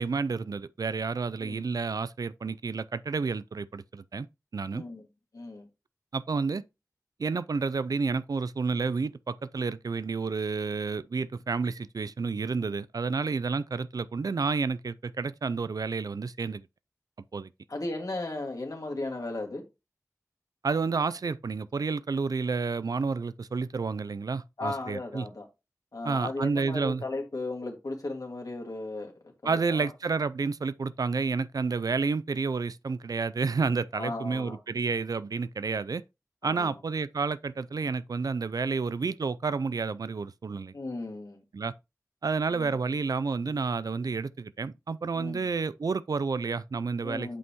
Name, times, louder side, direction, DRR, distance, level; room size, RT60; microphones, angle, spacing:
voice 1, 0.0-4.3 4.5-4.8 6.1-6.6 7.2-16.6 17.3-17.5 20.6-25.3 26.0-27.0 29.4-36.0 36.4-40.7 41.5-41.7 42.2-47.4, right 4 dB, 85° right, 0.4 m, -30 dB
voice 2, 4.7-5.1 5.3-5.7 17.7-19.6 24.6-25.5 25.9-29.9 34.0-34.6 36.4-36.7 40.7-41.4 42.5-42.8 45.1-45.5 47.0-47.4, left 2 dB, 75° left, 1.9 m, -36 dB
8.3 x 5.4 x 2.9 m
wide cardioid pair, 55°, 6 cm